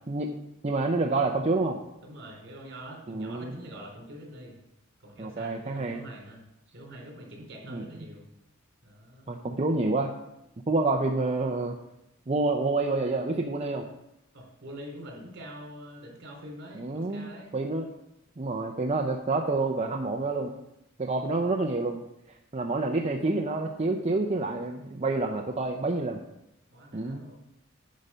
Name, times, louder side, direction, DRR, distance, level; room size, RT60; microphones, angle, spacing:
voice 1, 0.6-1.8 3.1-3.5 5.2-6.0 7.7-7.8 9.3-10.1 10.7-11.8 12.3-13.9 16.7-17.3 17.5-17.9 18.4-20.5 21.0-22.0 22.5-26.2 26.9-27.2, right 3 dB, 30° right, 1 dB, 0.6 m, -28 dB
voice 2, 2.0-4.6 5.0-6.4 6.7-8.2 8.8-9.4 14.3-17.5 26.7-27.3, equal, 60° right, -1 dB, 3.5 m, -45 dB
10.5 x 5.1 x 5.5 m, 0.87 s
head